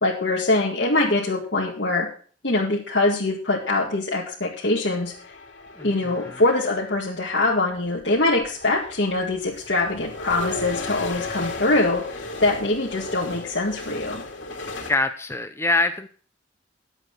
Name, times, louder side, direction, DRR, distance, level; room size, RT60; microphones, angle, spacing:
voice 1, 0.0-2.1 2.4-5.1 5.8-14.2, left 2 dB, 65° left, -5 dB, 2.1 m, -23 dB
sound 1, 4.8-7.1 8.0-8.1 8.4-14.9, left 3 dB, 80° left, 2.6 m, -35 dB
voice 2, 5.8-6.4 14.9-16.1, left 2 dB, 15° left, 9 dB, 0.6 m, -25 dB
11.0 x 7.9 x 6.1 m, 0.43 s
head